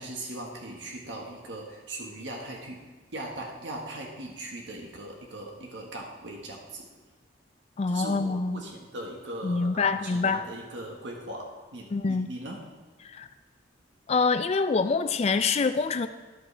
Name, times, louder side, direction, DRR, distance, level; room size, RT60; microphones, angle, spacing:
voice 1, 0.0-2.8 3.1-6.9 7.9-12.6, right 1 dB, 75° right, 0 dB, 1.6 m, -39 dB
voice 2, 7.8-8.6 9.4-10.4 11.9-12.3 13.1-13.3 14.1-16.1, left 4 dB, 35° left, 11 dB, 0.3 m, -25 dB
13.5 x 11.0 x 3.4 m, 1.3 s
head